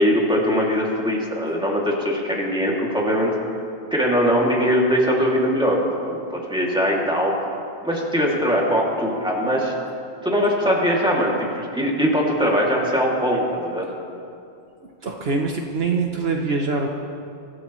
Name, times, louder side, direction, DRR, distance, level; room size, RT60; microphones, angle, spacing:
voice 1, 0.0-3.3 3.9-7.3 7.8-9.7 10.2-13.9, equal, 5° right, -4 dB, 2.4 m, -21 dB
voice 2, 15.0-16.9, right 4 dB, 60° right, 1 dB, 1.1 m, -24 dB
24.0 x 14.5 x 3.1 m, 2.5 s
omnidirectional pair, 1.2 m